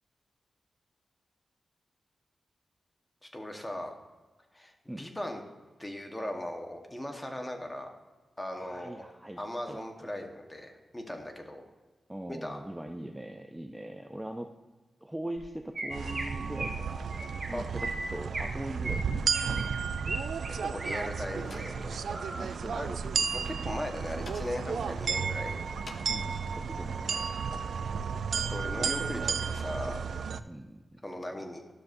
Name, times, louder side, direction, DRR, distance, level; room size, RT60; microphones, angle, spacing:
voice 1, 3.2-3.9 4.5-4.7 5.0-5.4 5.8-7.9 8.4-9.0 9.4-11.6 12.3-12.6 17.5-17.6 20.5-22.9 23.5-25.6 28.5-30.0 31.0-31.6, left 1 dB, 15° left, 3 dB, 1.1 m, -38 dB
voice 2, 8.5-9.4 9.7-10.1 12.1-14.5 15.0-17.1 17.5-19.6 22.3-23.5 26.1-27.2 30.4-31.0 31.4-31.5, right 1 dB, 10° right, 4 dB, 0.4 m, -41 dB
Chirp tweet, 15.4-15.5 15.7-16.2 16.6-16.8 17.1-17.5 17.8-18.5 18.8-20.2 20.4-21.0 21.4-21.7 22.1-22.5, right 2 dB, 35° right, 1.3 m, -37 dB
sound 1, 15.9-30.4, right 6 dB, 80° right, 0.3 m, -33 dB
Slam, 21.2-22.5 22.8-26.3, left 2 dB, 50° left, 0.7 m, -49 dB
11.5 x 6.7 x 2.6 m, 1.3 s
wide cardioid pair, 100°, 0 cm